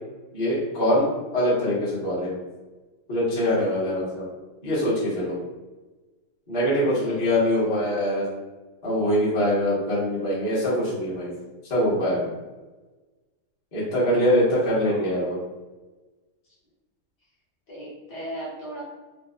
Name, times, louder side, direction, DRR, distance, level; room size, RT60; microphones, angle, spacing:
voice 1, 0.3-1.0 1.3-2.3 3.1-4.3 4.6-5.3 6.5-8.2 8.8-11.3 11.6-12.3 13.7-15.4, equal, 35° left, -9 dB, 0.8 m, -23 dB
voice 2, 7.6-7.9 14.0-14.1 14.4-15.1 17.7-18.8, right 1 dB, 55° left, -8 dB, 1.6 m, -38 dB
3.9 x 2.2 x 2.4 m, 1.2 s
omnidirectional pair, 2.3 m